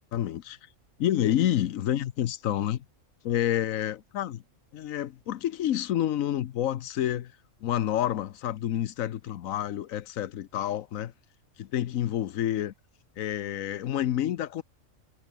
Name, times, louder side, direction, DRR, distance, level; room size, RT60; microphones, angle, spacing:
voice 1, 0.1-0.6 1.0-2.8 3.2-4.4 4.7-7.3 7.6-11.1 11.6-12.7 13.2-14.6, left 11 dB, 90° left, 1.2 m, -28 dB
omnidirectional pair, 1.4 m